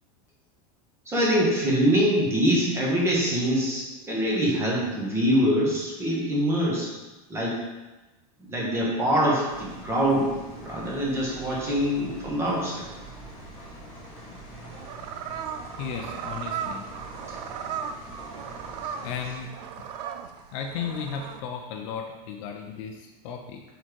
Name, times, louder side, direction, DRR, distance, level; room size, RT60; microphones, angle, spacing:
voice 1, 1.1-6.9 7.3-7.6 8.5-10.3 10.6-12.9, equal, 15° right, -4 dB, 1.2 m, -24 dB
sound 1, 9.5-19.3, right 1 dB, 10° left, 2.0 m, -44 dB
sound 2, 14.5-21.4, right 8 dB, 85° right, 0.5 m, -37 dB
voice 2, 15.8-16.9 19.0-19.5 19.8-20.1 20.5-23.6, left 7 dB, 50° left, 3 dB, 0.6 m, -35 dB
5.1 x 4.3 x 4.6 m, 1.1 s
supercardioid pair, 170°, 20 cm